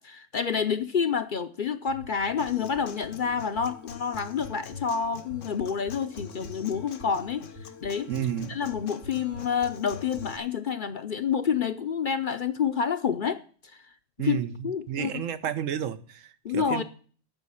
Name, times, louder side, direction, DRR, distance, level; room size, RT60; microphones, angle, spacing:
voice 1, 0.0-7.4 7.8-8.1 8.5-13.4 14.2-14.4 14.6-15.2 16.4-16.8, left 6 dB, 50° left, 0.7 m, -28 dB
sound 1, 1.9-10.3, left 3 dB, 55° right, 1.9 m, -43 dB
Human voice / Acoustic guitar, 2.4-10.4, left 7 dB, 80° left, 1.3 m, -45 dB
voice 2, 8.1-8.6 14.2-16.8, right 9 dB, 80° right, 1.2 m, -31 dB
9.0 x 6.3 x 8.3 m
omnidirectional pair, 1.3 m